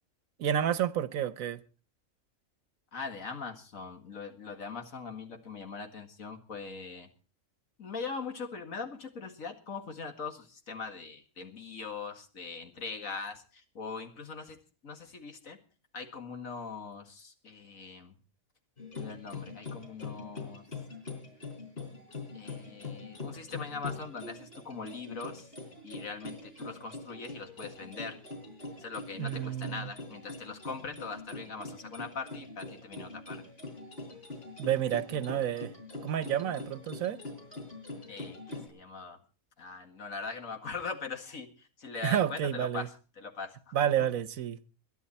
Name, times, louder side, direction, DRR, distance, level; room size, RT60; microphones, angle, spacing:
voice 1, 0.4-1.6 29.2-29.9 34.6-35.7 36.0-37.2 42.0-42.9 43.7-44.6, right 10 dB, 75° right, 15 dB, 1.3 m, -30 dB
voice 2, 2.9-7.1 7.8-14.6 14.8-15.6 15.9-18.1 18.9-20.6 22.3-25.5 25.8-28.2 28.8-33.4 38.1-39.2 39.6-42.9 43.2-43.7, left 4 dB, 70° left, 6 dB, 2.3 m, -41 dB
sound 1, 18.8-38.7, left 3 dB, 45° left, 4.4 m, -43 dB
22.0 x 10.5 x 4.3 m, 0.36 s
omnidirectional pair, 1.5 m